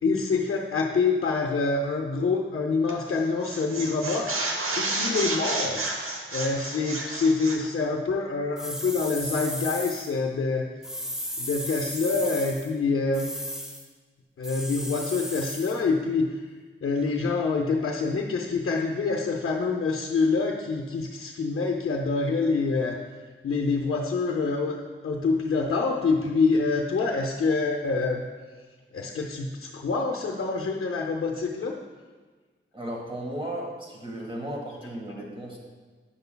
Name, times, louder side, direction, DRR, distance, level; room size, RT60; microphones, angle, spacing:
voice 1, 0.0-10.7 11.4-13.3 14.4-16.5 16.8-23.0 23.4-28.2 28.9-31.8, left 4 dB, 90° left, 0 dB, 0.5 m, -26 dB
sound 1, 2.9-3.1 3.4-7.7, right 2 dB, 90° right, 0.8 m, -31 dB
sound 2, 8.6-10.1 10.8-12.7 13.1-13.8 14.4-15.8, equal, 5° right, 0.7 m, -35 dB
voice 2, 32.7-35.6, right 1 dB, 25° right, -2 dB, 1.5 m, -35 dB
8.7 x 6.8 x 2.2 m, 1.4 s
wide cardioid pair, 70°, 21 cm